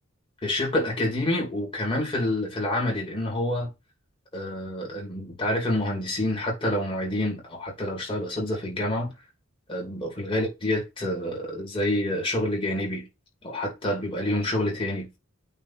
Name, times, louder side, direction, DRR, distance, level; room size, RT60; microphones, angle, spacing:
voice 1, 0.4-3.7 4.3-9.1 9.7-13.1 13.4-15.2, left 1 dB, 25° left, 2.8 m, -28 dB
8.8 x 3.0 x 4.2 m
head